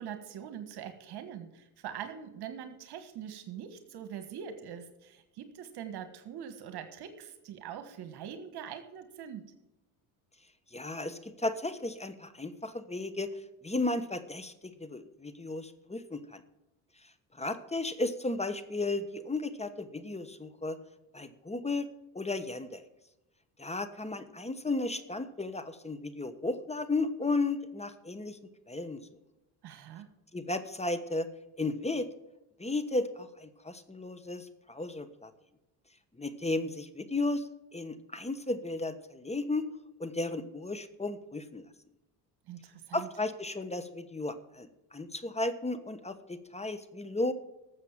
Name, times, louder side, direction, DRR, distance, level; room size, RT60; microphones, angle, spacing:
voice 1, 0.0-9.5 29.6-30.1 42.5-43.1, right 8 dB, 60° right, 9 dB, 1.6 m, -43 dB
voice 2, 10.7-13.3 13.6-16.4 17.3-20.8 21.1-21.9 22.1-22.8 23.6-28.4 28.7-29.0 30.3-31.3 31.6-32.1 32.6-35.3 36.2-39.7 40.0-41.6 42.9-47.3, left 2 dB, 15° left, 11 dB, 1.2 m, -34 dB
13.0 x 7.5 x 7.3 m, 0.94 s
supercardioid pair, 80°, 43 cm